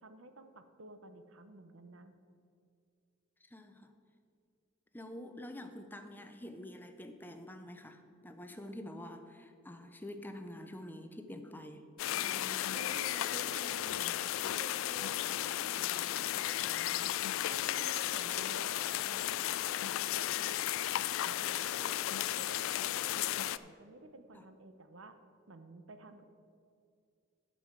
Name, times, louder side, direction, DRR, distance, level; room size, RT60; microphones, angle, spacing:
voice 1, 0.0-2.1 12.1-17.1 17.5-20.5 21.2-22.0 22.4-25.2 25.5-26.2, right 2 dB, 80° right, 9 dB, 0.8 m, -51 dB
voice 2, 3.5-3.9 4.9-11.9 24.3-24.4, left 1 dB, 10° left, 7 dB, 0.5 m, -47 dB
sound 1, 12.0-23.6, left 13 dB, 80° left, 0.3 m, -34 dB
10.5 x 5.4 x 8.0 m, 2.4 s
head